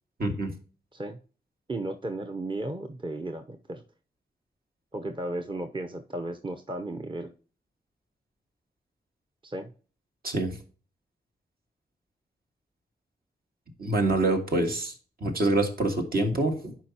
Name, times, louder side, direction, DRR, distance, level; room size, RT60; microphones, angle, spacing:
voice 1, 0.2-0.5 10.2-10.6 13.8-14.9 15.2-16.8, right 2 dB, 65° right, 2 dB, 1.9 m, -26 dB
voice 2, 1.7-3.8 4.9-7.3 9.4-9.7, right 2 dB, 30° right, 5 dB, 0.8 m, -34 dB
11.0 x 4.7 x 2.9 m, 0.39 s
wide cardioid pair, 80°, 17 cm